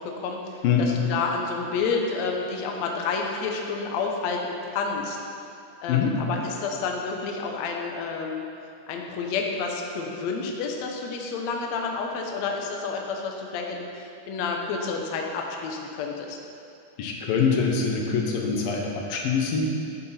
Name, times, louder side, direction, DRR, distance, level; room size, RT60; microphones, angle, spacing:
voice 1, 0.0-5.2 5.8-8.4 8.9-16.4, left 4 dB, 85° left, 1 dB, 1.5 m, -30 dB
voice 2, 17.0-19.7, left 6 dB, 70° left, 0 dB, 2.7 m, -24 dB
11.0 x 9.8 x 4.3 m, 2.5 s
omnidirectional pair, 4.6 m